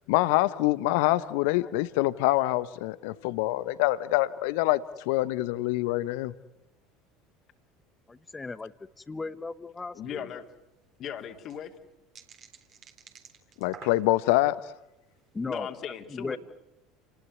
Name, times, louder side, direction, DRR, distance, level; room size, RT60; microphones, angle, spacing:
voice 1, 0.1-4.8 5.1-6.3 13.6-14.6, left 17 dB, 65° left, 1.0 m, -25 dB
voice 2, 8.1-8.7 9.0-10.3 15.3-15.7 16.1-16.4, left 3 dB, 20° left, 1.2 m, -36 dB
voice 3, 9.9-10.5 11.0-11.7 15.5-16.4, left 9 dB, 45° left, 3.1 m, -37 dB
sound 1, 10.4-10.5 10.6-10.7 11.2-14.4 15.0-15.3, right 7 dB, 45° right, 3.7 m, -50 dB
30.0 x 20.0 x 9.6 m
figure-of-eight pair, 70°, 0 cm